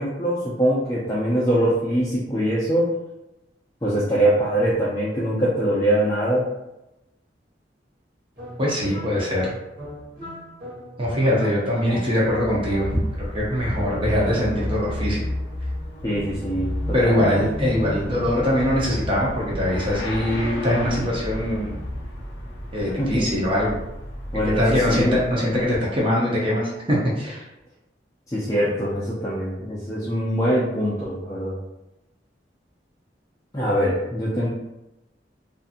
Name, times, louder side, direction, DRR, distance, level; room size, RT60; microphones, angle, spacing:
voice 1, 0.0-2.9 3.8-6.5 16.0-16.7 17.0-17.4 23.0-23.3 24.3-25.1 28.3-31.5 33.5-34.5, right 1 dB, 20° left, -8 dB, 0.4 m, -23 dB
sound 1, 8.4-13.3 13.7-15.3, equal, 50° right, 1.1 m, -37 dB
voice 2, 8.6-9.5 11.0-13.0 13.3-15.2 16.9-21.8 22.7-23.8 24.5-27.4, left 1 dB, 30° right, -5 dB, 0.6 m, -22 dB
Motorcycle / Accelerating revving vroom, 12.1-25.9, left 1 dB, 80° left, 0.7 m, -32 dB
2.6 x 2.6 x 2.4 m, 0.92 s
head